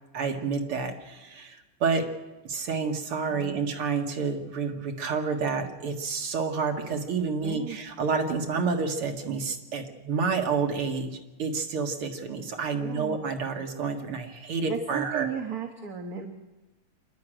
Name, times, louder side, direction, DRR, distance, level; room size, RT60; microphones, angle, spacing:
voice 1, 0.1-2.1 2.4-15.3, right 5 dB, 80° right, 3 dB, 2.7 m, -29 dB
voice 2, 3.3-3.7 7.4-7.8 12.8-13.2 14.7-16.3, right 7 dB, 45° right, 4 dB, 1.8 m, -35 dB
26.0 x 11.5 x 9.0 m, 1.1 s
omnidirectional pair, 2.4 m